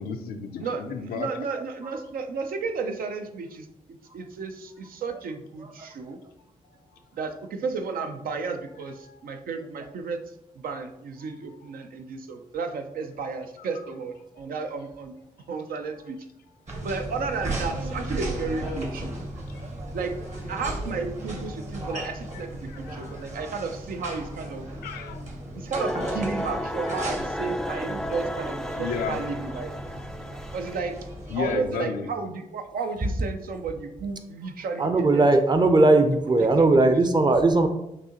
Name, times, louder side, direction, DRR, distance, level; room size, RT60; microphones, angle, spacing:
voice 1, 0.0-1.3 9.0-9.2 11.3-11.5 13.6-13.7 19.5-19.6 22.3-22.4 22.7-23.3 24.8-25.3 26.8-27.0 28.1-28.2 28.7-29.2 31.3-32.1, left 6 dB, 90° left, 7 dB, 0.5 m, -33 dB
voice 2, 0.6-6.2 7.1-10.2 10.6-15.1 15.5-16.2 16.8-19.2 19.9-20.1 20.5-24.6 25.5-29.7 30.5-31.0 31.4-35.6 36.4-37.2, right 4 dB, 70° right, 6 dB, 0.6 m, -33 dB
sound 1, 16.7-31.5, right 1 dB, 50° right, 1.4 m, -36 dB
sound 2, 25.7-30.8, equal, 5° left, 0.3 m, -33 dB
voice 3, 34.8-37.7, right 2 dB, 30° right, 8 dB, 0.6 m, -19 dB
6.0 x 2.7 x 2.9 m, 0.86 s
supercardioid pair, 50°, 15 cm